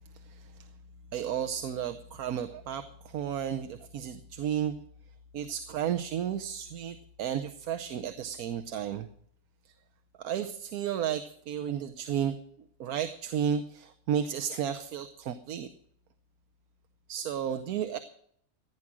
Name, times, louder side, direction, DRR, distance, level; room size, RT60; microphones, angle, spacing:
voice 1, 1.1-4.8 5.3-9.1 9.6-9.7 10.2-12.3 12.8-15.7 17.1-18.0, right 9 dB, 85° right, 9 dB, 1.3 m, -33 dB
15.0 x 9.9 x 6.1 m, 0.68 s
omnidirectional pair, 1.5 m